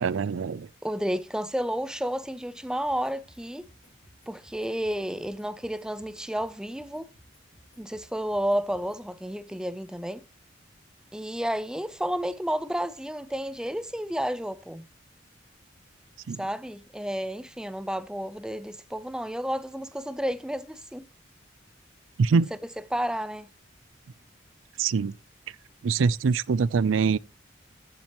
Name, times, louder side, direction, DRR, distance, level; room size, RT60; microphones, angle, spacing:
voice 1, 0.0-0.7 16.3-16.4 22.2-22.5 24.8-25.2 25.8-27.2, right 5 dB, 90° right, 0.4 m, -24 dB
voice 2, 0.8-3.7 4.3-7.1 7.8-10.2 11.1-14.9 16.4-21.1 22.9-23.5, equal, 5° right, 0.5 m, -31 dB
sound 1, 2.9-9.1, equal, 85° left, 5.1 m, -59 dB
15.0 x 7.5 x 3.0 m
head